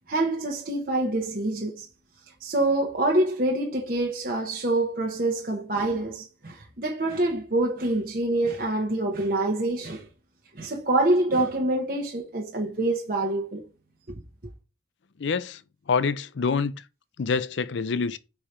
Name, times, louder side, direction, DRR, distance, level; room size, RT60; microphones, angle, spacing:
voice 1, 0.1-1.9 2.4-10.0 10.5-13.6, right 2 dB, 45° right, 1.0 m, -26 dB
voice 2, 15.2-15.6 15.9-16.7 17.2-18.2, left 5 dB, 65° left, 0.5 m, -26 dB
5.0 x 4.7 x 4.3 m
head